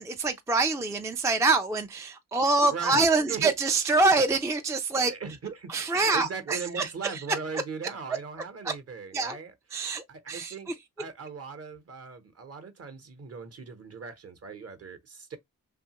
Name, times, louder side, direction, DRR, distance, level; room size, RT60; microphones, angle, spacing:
voice 1, 0.0-5.1 5.7-7.2 8.6-8.7 9.1-9.4 9.7-10.7, right 3 dB, 10° right, 0.3 m, -25 dB
voice 2, 2.7-3.5 5.1-9.5 10.1-10.7 11.0-15.4, right 5 dB, 40° right, 0.8 m, -39 dB
2.7 x 2.3 x 2.8 m
supercardioid pair, 50°, 36 cm